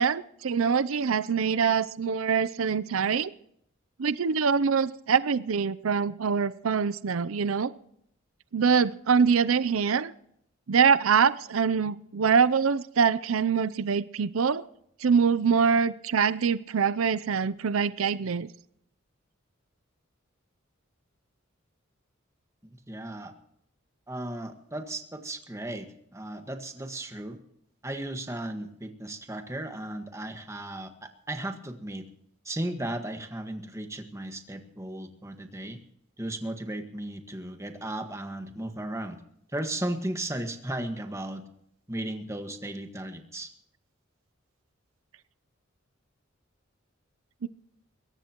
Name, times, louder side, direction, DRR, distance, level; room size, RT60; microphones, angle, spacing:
voice 1, 0.0-3.3 4.0-7.7 8.5-10.1 10.7-14.6 15.0-18.5 47.4-47.5, right 6 dB, 85° right, 16 dB, 0.6 m, -24 dB
voice 2, 22.7-23.3 24.1-27.4 27.8-32.0 32.4-35.8 36.2-39.2 39.5-41.4 41.9-43.5, right 1 dB, 15° right, 5 dB, 1.6 m, -35 dB
22.5 x 17.5 x 3.0 m, 0.73 s
head